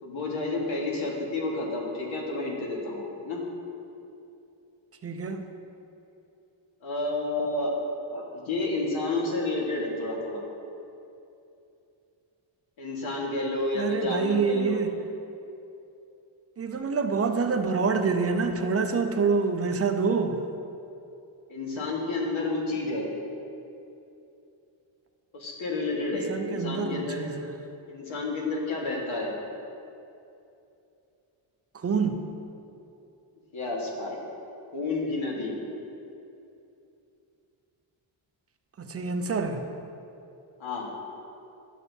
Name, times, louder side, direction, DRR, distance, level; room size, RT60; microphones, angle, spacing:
voice 1, 0.0-3.4 6.8-7.7 8.1-10.4 12.8-14.8 21.5-23.1 25.3-27.2 27.9-29.3 33.5-34.2 34.7-35.6 40.6-40.9, left 2 dB, 70° left, -2 dB, 1.6 m, -30 dB
voice 2, 5.0-5.4 13.7-14.9 16.6-20.4 26.1-27.6 31.7-32.3 38.8-39.6, right 4 dB, 30° right, 6 dB, 0.5 m, -27 dB
11.0 x 6.2 x 2.7 m, 2.7 s
cardioid pair, 95°, 49 cm